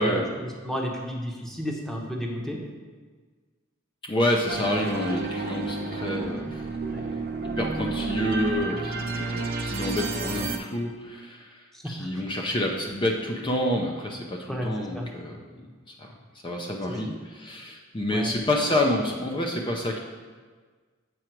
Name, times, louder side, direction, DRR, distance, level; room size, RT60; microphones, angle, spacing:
voice 1, 0.0-2.6 6.9-7.0 11.7-12.1 14.5-15.1 16.9-17.0 18.1-18.3, equal, ahead, -1 dB, 0.9 m, -32 dB
voice 2, 4.0-6.8 7.4-15.7 16.0-16.1 16.4-20.0, left 1 dB, 25° left, 1 dB, 0.5 m, -28 dB
sound 1, 4.5-10.6, right 3 dB, 45° right, 0.8 m, -30 dB
7.7 x 4.8 x 4.5 m, 1.4 s
head